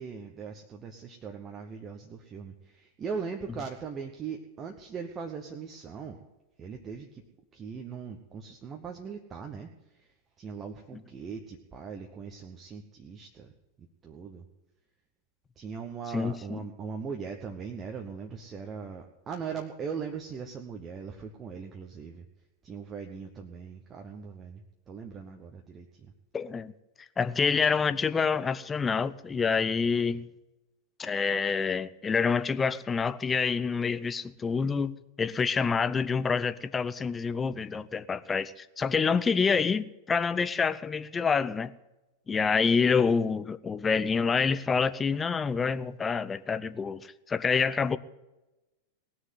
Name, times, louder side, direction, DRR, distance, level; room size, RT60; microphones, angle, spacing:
voice 1, 0.0-6.2 6.6-7.2 7.5-13.5 14.0-14.4 15.6-22.3 22.6-26.1, right 6 dB, 25° right, 1.1 m, -40 dB
voice 2, 16.1-16.6 26.3-26.7 27.2-30.3 31.0-41.7 42.3-48.0, left 5 dB, 15° left, 0.5 m, -27 dB
19.0 x 6.4 x 9.4 m
figure-of-eight pair, 90°, 0 cm